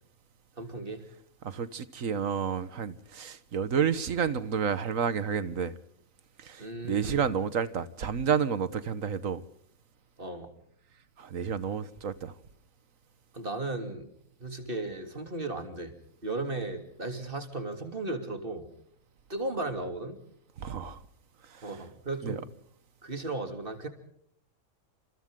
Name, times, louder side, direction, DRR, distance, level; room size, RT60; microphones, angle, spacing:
voice 1, 0.6-1.0 6.6-7.2 10.2-10.5 13.3-14.1 14.4-15.9 16.2-18.7 19.3-20.2 21.6-22.4 23.0-23.9, right 2 dB, 40° right, 3.4 m, -35 dB
voice 2, 1.4-5.7 6.4-9.4 11.2-12.3 20.6-21.0 21.4-21.8 22.2-22.4, right 7 dB, 80° right, 1.6 m, -30 dB
29.0 x 27.0 x 3.8 m
omnidirectional pair, 1.4 m